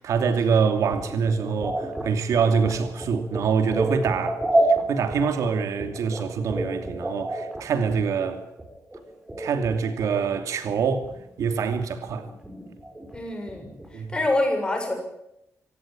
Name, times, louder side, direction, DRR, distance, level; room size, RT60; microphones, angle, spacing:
voice 1, 0.0-4.4 4.9-8.4 9.4-11.1 11.4-12.3 13.9-14.1, right 6 dB, 85° right, 2.8 m, -25 dB
sound 1, 0.9-10.4 10.7-11.4 11.7-14.0, right 1 dB, 10° right, 5.1 m, -30 dB
voice 2, 13.1-13.7 13.9-15.0, left 2 dB, 15° left, 7.1 m, -25 dB
26.0 x 16.5 x 8.7 m
wide cardioid pair, 170°, 5 cm